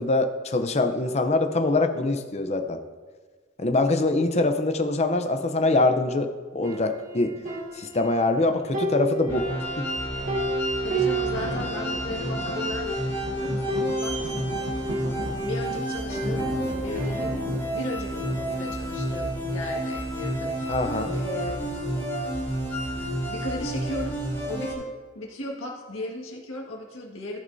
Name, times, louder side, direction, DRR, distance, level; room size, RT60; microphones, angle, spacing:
voice 1, 0.0-2.8 3.6-7.3 7.8-9.4 9.8-9.9 20.7-21.1, left 2 dB, 35° left, 7 dB, 0.7 m, -24 dB
sound 1, 6.6-8.4 8.7-12.0 12.3-12.4 12.6-13.2 13.7-15.7 16.1-17.8, right 2 dB, 45° right, 1.2 m, -32 dB
sound 2, 9.3-24.7, equal, 10° left, 3.2 m, -30 dB
voice 2, 10.8-14.3 15.4-17.5 17.7-21.6 23.3-24.2 24.5-27.4, left 1 dB, 85° left, -1 dB, 1.8 m, -36 dB
Thunder, 10.8-21.8 22.5-22.6, right 1 dB, 80° right, 0.9 m, -40 dB
14.5 x 8.7 x 2.7 m, 1.4 s
head